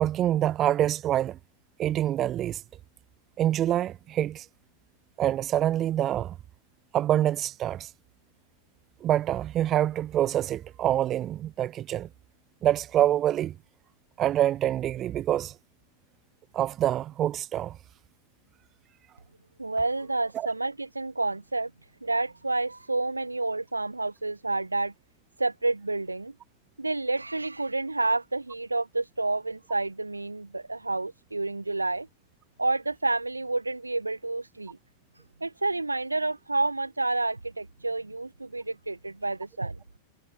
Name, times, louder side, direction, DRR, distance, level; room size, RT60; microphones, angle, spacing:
voice 1, 0.0-1.4 1.8-2.6 3.4-4.5 5.2-6.4 6.9-7.9 9.0-12.1 12.6-13.6 14.2-15.5 16.5-17.8 20.3-20.5, right 12 dB, 30° right, 0.6 m, -26 dB
voice 2, 19.6-21.7 22.0-24.9 25.4-26.3 26.8-32.1 32.6-34.8 35.4-39.8, right 2 dB, 80° right, 1.6 m, -29 dB
figure-of-eight pair, 90°, 0 cm